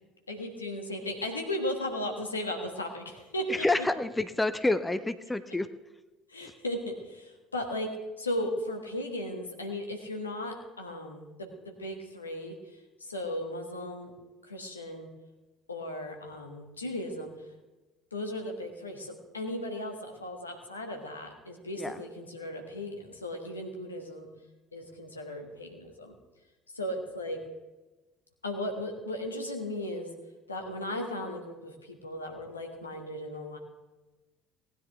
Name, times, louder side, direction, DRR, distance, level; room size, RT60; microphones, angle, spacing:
voice 1, 0.3-3.6 6.3-7.9 8.2-14.1 14.4-15.1 15.7-17.3 18.1-24.3 24.7-26.1 26.7-27.4 28.4-30.1 30.5-33.6, left 1 dB, 85° left, 2 dB, 1.5 m, -36 dB
voice 2, 3.5-5.7 6.4-6.5 21.8-22.0, left 2 dB, 10° left, 12 dB, 0.7 m, -28 dB
18.5 x 9.9 x 3.5 m, 1.2 s
figure-of-eight pair, 60°, 0 cm